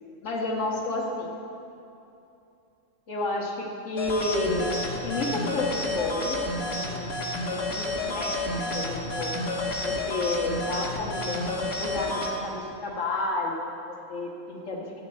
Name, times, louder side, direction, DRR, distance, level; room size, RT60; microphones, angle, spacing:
voice 1, 0.2-1.3 3.1-3.6 3.8-9.3 9.8-15.0, left 2 dB, 75° left, -1 dB, 1.7 m, -31 dB
sound 1, 4.0-12.3, left 2 dB, 55° left, 1.5 m, -30 dB
14.0 x 8.7 x 4.3 m, 2.8 s
omnidirectional pair, 1.3 m